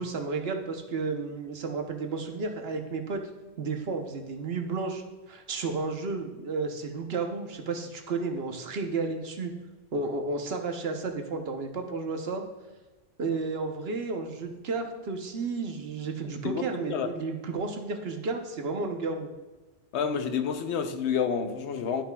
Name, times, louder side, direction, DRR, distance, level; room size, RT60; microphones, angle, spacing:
voice 1, 0.0-3.2 3.6-9.5 9.9-12.4 13.2-19.3, right 4 dB, 65° right, 4 dB, 1.1 m, -32 dB
voice 2, 16.4-17.1 19.9-22.0, left 7 dB, 85° left, 7 dB, 1.0 m, -29 dB
11.5 x 5.7 x 2.3 m, 1.2 s
omnidirectional pair, 1.1 m